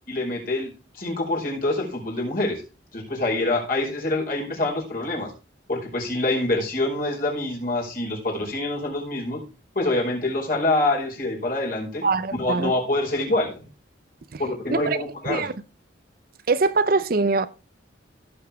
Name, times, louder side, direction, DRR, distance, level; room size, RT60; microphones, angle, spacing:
voice 1, 0.1-2.6 2.9-5.3 5.7-9.4 9.7-12.0 12.3-13.7 14.4-15.5, left 2 dB, 50° left, 5.0 m, -26 dB
voice 2, 12.0-12.7 14.3-14.4 14.7-15.0 15.3-15.5 16.5-17.5, right 3 dB, 50° right, 0.6 m, -22 dB
16.5 x 7.1 x 3.5 m
head